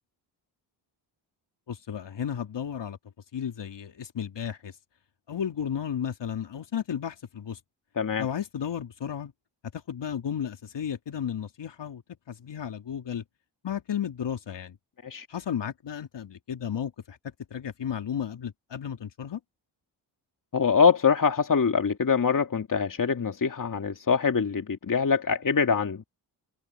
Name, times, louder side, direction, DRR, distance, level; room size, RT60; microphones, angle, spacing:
voice 1, 1.7-3.0 3.3-4.7 5.3-7.6 8.2-9.3 9.9-12.0 12.3-13.2 13.6-14.8 15.3-17.2 17.5-19.4, left 8 dB, 65° left, 3.4 m, -33 dB
voice 2, 8.0-8.3 15.0-15.3 20.5-26.0, left 6 dB, 40° left, 2.4 m, -24 dB
cardioid pair, 65°, 46 cm